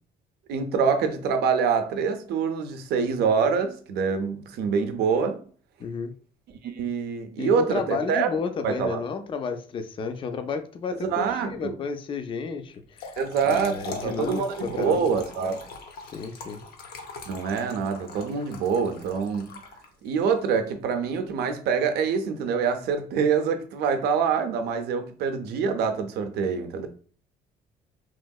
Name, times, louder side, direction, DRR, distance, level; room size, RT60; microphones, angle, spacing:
voice 1, 0.5-5.4 6.6-8.3 8.6-9.0 10.9-11.8 13.2-15.6 17.3-19.6 20.0-26.9, right 6 dB, 75° right, 0.6 m, -25 dB
voice 2, 5.8-6.1 7.4-13.2 13.4-15.1 16.1-16.6, left 5 dB, 30° left, 0.4 m, -32 dB
Trickle dribble / Fill (with liquid), 12.7-20.2, left 4 dB, 65° left, 0.7 m, -41 dB
3.0 x 2.7 x 2.3 m
cardioid pair, 110°, 17 cm